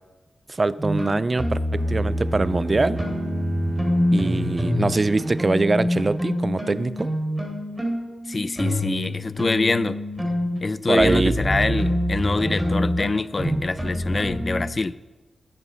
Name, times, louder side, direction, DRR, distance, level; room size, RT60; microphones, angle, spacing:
voice 1, 0.5-3.0 4.1-7.1 10.9-11.4, right 3 dB, 35° right, 17 dB, 0.3 m, -23 dB
sound 1, 0.8-4.9 5.2-14.7, equal, 15° right, 3.3 m, -26 dB
sound 2, 1.7-6.1, right 1 dB, 50° right, 2.7 m, -33 dB
voice 2, 8.3-10.0 10.6-14.9, left 3 dB, 35° left, 17 dB, 0.4 m, -25 dB
9.7 x 9.7 x 6.1 m, 1.2 s
wide cardioid pair, 90°, 0 cm